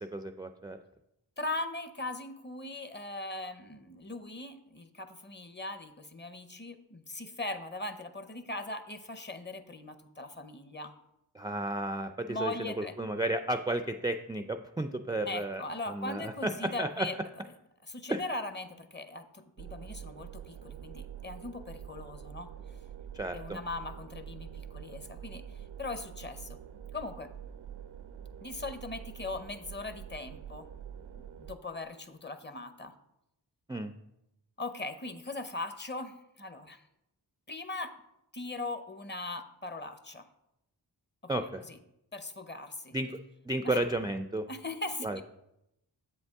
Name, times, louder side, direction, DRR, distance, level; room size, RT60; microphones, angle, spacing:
voice 1, 0.1-0.8 11.3-15.6 15.9-17.1 18.1-18.2 23.1-23.6 33.7-33.9 41.3-41.6 42.9-43.2 43.4-44.5 45.0-45.2, right 1 dB, 10° right, 7 dB, 0.3 m, -33 dB
voice 2, 1.4-10.9 12.3-12.9 15.2-17.1 17.9-22.5 23.3-26.6 26.9-27.3 28.4-30.7 31.4-32.9 34.6-36.8 37.5-37.9 38.3-40.3 41.7-41.8 42.1-43.0 43.6-43.8 44.5-45.2, left 2 dB, 25° left, 9 dB, 0.6 m, -40 dB
sound 1, 19.6-31.6, right 9 dB, 70° right, 0.5 m, -46 dB
7.5 x 5.4 x 3.5 m, 0.85 s
cardioid pair, 45°, 42 cm